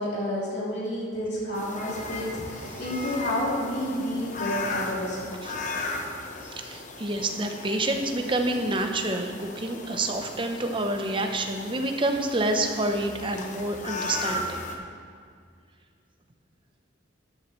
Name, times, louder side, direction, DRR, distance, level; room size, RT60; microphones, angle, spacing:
voice 1, 0.0-5.2, left 1 dB, 60° left, -6 dB, 3.2 m, -30 dB
sound 1, 1.5-14.8, left 2 dB, 40° left, 0.9 m, -36 dB
voice 2, 5.4-5.9 6.5-14.6, right 2 dB, 25° right, 4 dB, 0.8 m, -28 dB
13.5 x 10.5 x 3.2 m, 2.1 s
head